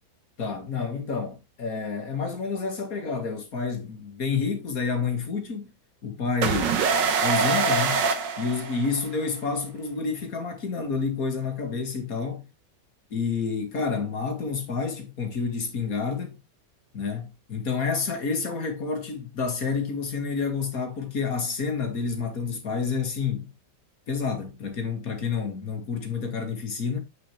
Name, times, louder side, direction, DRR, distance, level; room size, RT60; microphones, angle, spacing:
voice 1, 0.4-5.7 6.0-6.8 7.2-8.1 8.4-12.4 13.1-16.4 16.9-23.5 24.1-27.0, left 5 dB, 55° left, 2.4 m, -29 dB
sound 1, 6.4-9.2, right 5 dB, 85° right, 1.9 m, -24 dB
8.4 x 6.6 x 3.3 m
omnidirectional pair, 1.9 m